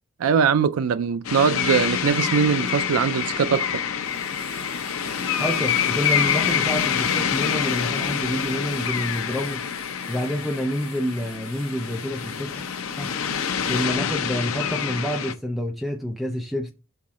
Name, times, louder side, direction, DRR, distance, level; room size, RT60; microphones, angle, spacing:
voice 1, 0.2-3.8, right 6 dB, 85° right, 0.4 m, -21 dB
sound 1, 1.2-15.3, left 7 dB, 85° left, 0.7 m, -26 dB
sound 2, 4.0-13.8, right 5 dB, 50° right, 2.4 m, -48 dB
voice 2, 5.4-9.6 10.1-12.6 13.0-13.1 13.7-16.7, equal, ahead, 0.5 m, -28 dB
5.8 x 3.8 x 4.8 m
head